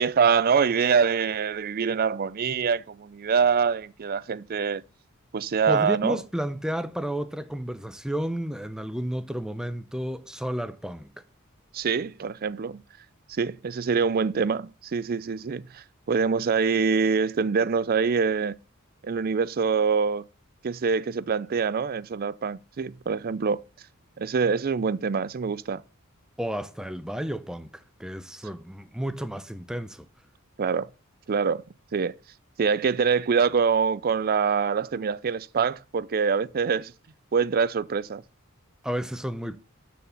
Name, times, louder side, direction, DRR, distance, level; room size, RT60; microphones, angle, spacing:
voice 1, 0.0-4.8 5.3-6.2 11.7-12.8 13.3-18.6 19.0-20.2 20.6-23.6 24.2-25.8 30.6-30.9 31.3-31.6 31.9-32.1 32.6-36.9 37.3-38.2, right 5 dB, 45° right, 0.4 m, -25 dB
voice 2, 5.7-11.2 26.4-30.1 38.8-39.6, equal, 5° right, 0.6 m, -32 dB
12.5 x 4.2 x 7.0 m
head